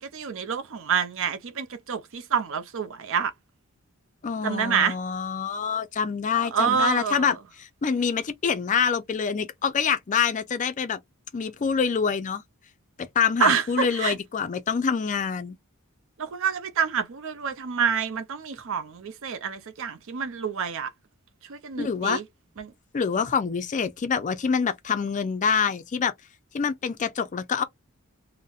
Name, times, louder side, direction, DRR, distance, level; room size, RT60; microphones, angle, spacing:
voice 1, 0.0-3.3 4.4-4.9 6.3-7.3 13.4-14.1 16.2-20.9 21.5-22.2 22.6-22.7, right 6 dB, 65° right, 0.5 m, -27 dB
voice 2, 4.2-11.0 11.3-12.4 13.0-15.6 21.8-22.2 22.9-26.1 26.5-27.6, left 6 dB, 35° left, 0.4 m, -26 dB
4.0 x 2.1 x 2.3 m
head